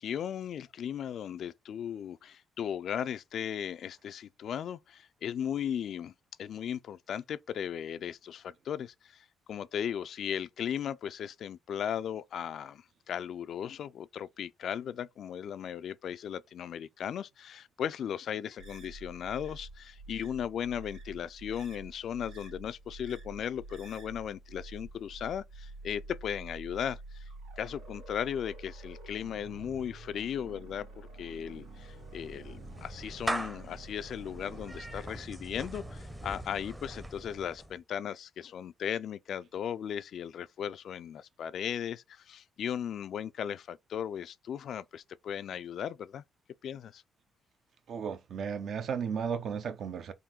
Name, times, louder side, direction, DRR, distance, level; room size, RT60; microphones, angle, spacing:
voice 1, 0.0-6.1 6.4-27.2 27.6-30.9 31.2-46.2 46.6-47.0, left 9 dB, 65° left, 0.3 m, -37 dB
sound 1, 18.6-35.0, right 2 dB, 90° right, 2.0 m, -48 dB
Clapping / Meow, 31.4-37.8, right 1 dB, 10° right, 0.7 m, -41 dB
voice 2, 47.9-50.1, right 6 dB, 60° right, 0.7 m, -34 dB
3.7 x 2.7 x 4.3 m
cardioid pair, 90°, 0 cm